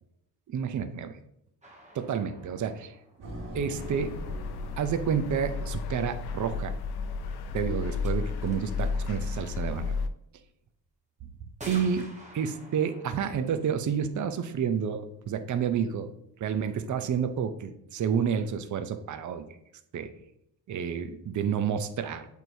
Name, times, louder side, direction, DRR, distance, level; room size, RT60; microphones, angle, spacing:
voice 1, 0.5-1.2 1.9-3.0 3.5-4.2 4.8-6.7 7.5-10.0 11.7-12.1 12.3-16.1 16.4-19.4 19.9-20.1 20.7-22.3, right 7 dB, 45° right, 9 dB, 0.6 m, -30 dB
sound 1, 1.6-4.3 7.0-7.1 7.6-7.7 8.0-8.1 8.4-9.0 10.3-10.4 11.6-15.2, right 1 dB, 15° right, 1.1 m, -49 dB
sound 2, 3.2-6.9, right 1 dB, 80° right, 2.0 m, -43 dB
sound 3, 3.8-10.1, left 4 dB, 65° left, 0.6 m, -33 dB
8.1 x 4.5 x 2.7 m, 0.79 s
cardioid pair, 130°, 42 cm